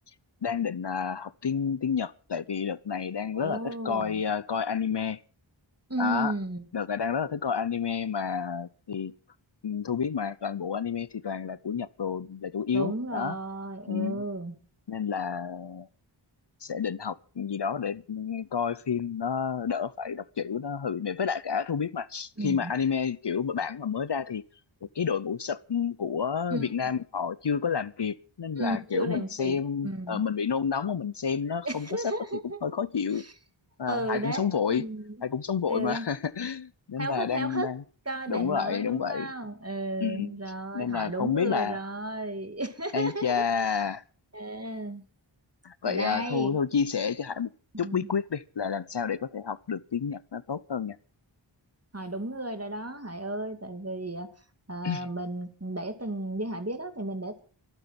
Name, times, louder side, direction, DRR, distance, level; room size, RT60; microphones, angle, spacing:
voice 1, 0.4-5.2 6.0-6.3 6.7-9.1 9.6-13.4 13.9-14.2 14.9-15.9 16.6-24.4 24.8-32.1 32.6-33.2 33.8-34.8 35.2-37.8 38.3-39.3 40.0-40.3 40.7-41.8 42.9-44.0 45.6-47.5 47.8-51.0 54.8-55.1, left 6 dB, 60° left, 0.7 m, -30 dB
voice 2, 3.3-4.2 5.9-6.6 12.7-14.6 22.4-22.7 26.5-26.7 28.6-30.2 31.6-32.6 33.1-33.3 33.9-35.1 35.7-36.1 37.0-37.7 38.1-43.8 44.3-45.0 45.8-46.6 47.8-48.1 51.9-54.3 54.7-57.4, right 1 dB, 30° right, 2.5 m, -34 dB
24.5 x 9.1 x 5.9 m
wide cardioid pair, 40°, 48 cm